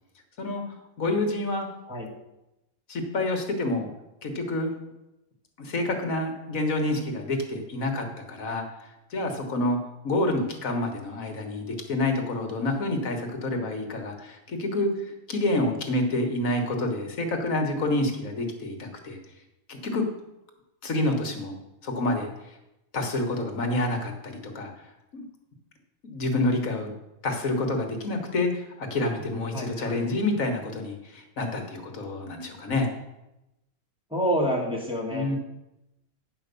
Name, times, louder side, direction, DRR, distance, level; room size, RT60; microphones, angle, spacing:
voice 1, 1.0-1.7 2.9-3.9 4.2-4.7 5.6-8.6 9.1-9.8 10.0-19.2 19.7-20.0 20.8-22.3 22.9-24.7 25.1-25.2 26.0-26.9 27.2-32.9 35.1-35.4, left 2 dB, 70° left, 4 dB, 1.8 m, -28 dB
voice 2, 29.5-30.0 34.1-35.3, equal, 5° right, -3 dB, 2.3 m, -28 dB
10.0 x 5.7 x 6.8 m, 0.91 s
omnidirectional pair, 1.5 m